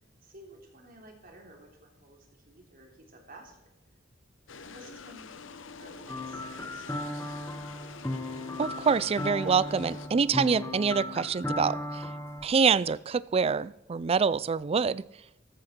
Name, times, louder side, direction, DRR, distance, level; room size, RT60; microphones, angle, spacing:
voice 1, 0.2-2.2 2.5-3.6 4.6-7.3, right 1 dB, 50° right, 2 dB, 3.3 m, -53 dB
sound 1, 4.5-10.1, left 5 dB, 75° left, 0.8 m, -46 dB
sound 2, 6.1-12.5, left 1 dB, 15° left, 1.0 m, -36 dB
voice 2, 8.6-12.1 12.4-15.0, right 5 dB, 30° right, 20 dB, 0.4 m, -26 dB
14.0 x 13.0 x 4.4 m, 0.91 s
head